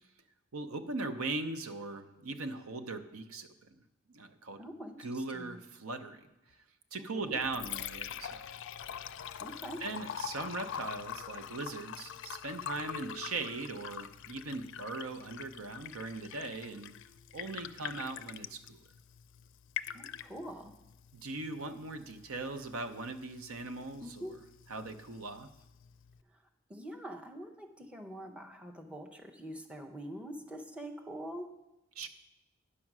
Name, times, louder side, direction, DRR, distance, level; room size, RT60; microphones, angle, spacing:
voice 1, 0.5-3.5 4.1-4.6 5.0-6.2 6.9-8.5 9.8-16.9 17.3-18.8 21.1-24.2 24.7-25.5 32.0-32.1, right 3 dB, 85° right, 9 dB, 0.7 m, -39 dB
voice 2, 4.6-5.6 7.0-7.3 9.4-9.8 19.9-20.7 24.0-24.3 26.3-26.4 26.7-31.6, equal, 5° right, 2 dB, 0.7 m, -44 dB
Liquid, 7.2-26.2, left 9 dB, 60° left, 0.4 m, -45 dB
9.8 x 6.5 x 6.0 m, 0.94 s
head